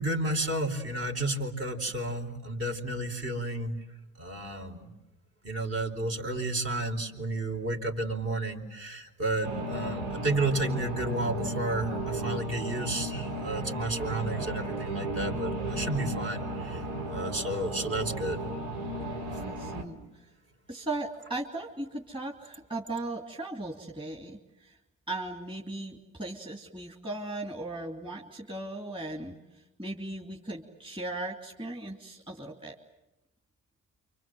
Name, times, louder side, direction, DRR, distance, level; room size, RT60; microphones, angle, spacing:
voice 1, 0.0-3.8 4.2-4.9 5.4-16.8 17.1-18.5, right 2 dB, 45° right, 3 dB, 4.6 m, -32 dB
sound 1, 9.4-19.8, right 1 dB, 90° right, 4.5 m, -34 dB
voice 2, 19.4-20.2 20.7-24.8 25.1-32.7, right 2 dB, 15° right, 0 dB, 3.0 m, -37 dB
29.0 x 26.0 x 7.8 m, 0.95 s
cardioid pair, 105°, 33 cm